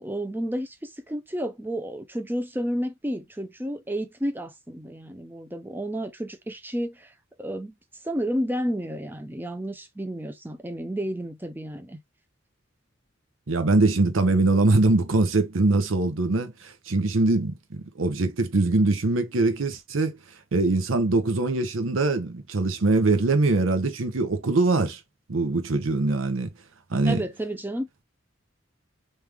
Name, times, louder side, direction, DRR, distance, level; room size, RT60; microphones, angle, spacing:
voice 1, 0.0-7.1 7.4-7.7 8.0-12.0 27.0-27.9, equal, 10° right, 0.5 m, -31 dB
voice 2, 13.5-20.2 20.5-25.0 25.3-26.5 26.9-27.2, right 2 dB, 80° right, 0.7 m, -22 dB
3.3 x 3.2 x 3.5 m
head